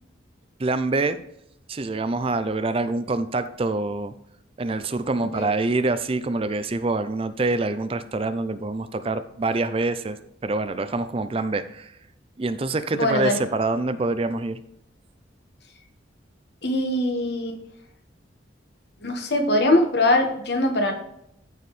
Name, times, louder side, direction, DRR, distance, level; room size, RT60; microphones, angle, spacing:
voice 1, 0.6-1.2 1.7-4.1 4.6-10.2 10.4-11.9 12.4-14.6, right 2 dB, 30° right, 11 dB, 0.4 m, -25 dB
voice 2, 12.9-13.4 16.6-17.6 19.0-20.9, left 1 dB, 55° left, 4 dB, 1.4 m, -22 dB
14.5 x 4.8 x 3.2 m, 0.77 s
head